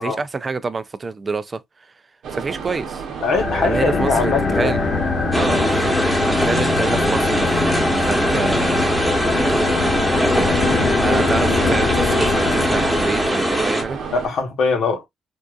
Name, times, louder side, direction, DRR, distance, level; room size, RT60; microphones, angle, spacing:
voice 1, 0.0-1.6 2.3-3.0 3.6-4.8 5.4-5.9 6.3-7.6 7.9-9.2 9.5-9.7 10.3-10.5 11.0-14.0, right 4 dB, 30° right, 0.4 m, -27 dB
sound 1, 2.2-14.3, right 6 dB, 75° right, 0.8 m, -31 dB
voice 2, 3.2-4.8 14.1-15.1, left 4 dB, 70° left, 1.1 m, -21 dB
sound 2, 3.3-13.8, left 4 dB, 35° left, 0.9 m, -22 dB
sound 3, 5.3-13.8, right 1 dB, 5° right, 1.1 m, -21 dB
3.5 x 2.5 x 2.3 m
cardioid pair, 90°, 0 cm